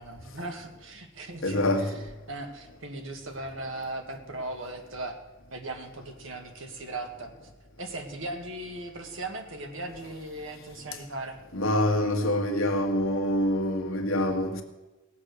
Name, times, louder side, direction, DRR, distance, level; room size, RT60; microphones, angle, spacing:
voice 1, 0.0-1.9 2.3-5.2 5.5-7.3 7.8-11.4, right 2 dB, 65° right, 1.8 m, -38 dB
voice 2, 1.4-1.9 11.5-14.6, left 1 dB, 70° left, 1.6 m, -25 dB
18.5 x 7.6 x 6.6 m
head